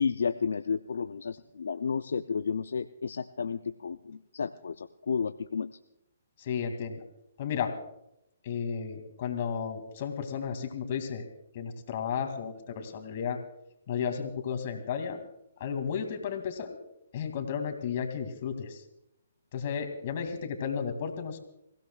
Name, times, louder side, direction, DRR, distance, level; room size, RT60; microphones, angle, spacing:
voice 1, 0.0-5.7, left 6 dB, 75° left, 9 dB, 0.5 m, -32 dB
voice 2, 6.4-7.0 7.4-7.8 8.4-11.2 11.5-13.4 13.9-15.2 15.6-16.8 17.1-18.8 19.5-21.4, left 7 dB, 50° left, 6 dB, 2.4 m, -33 dB
27.0 x 16.0 x 2.4 m, 0.82 s
hypercardioid pair, 140°, 0 cm